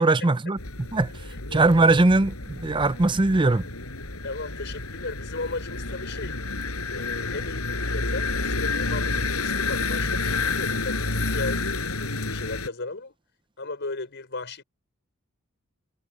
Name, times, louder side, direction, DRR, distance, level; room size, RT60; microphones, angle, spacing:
voice 1, 0.0-1.1 1.5-3.7, right 2 dB, 20° right, 0.6 m, -20 dB
sound 1, 0.6-12.7, left 3 dB, 90° left, 5.5 m, -29 dB
voice 2, 4.2-6.4 6.9-13.1 13.6-14.6, left 3 dB, 55° left, 5.5 m, -36 dB
head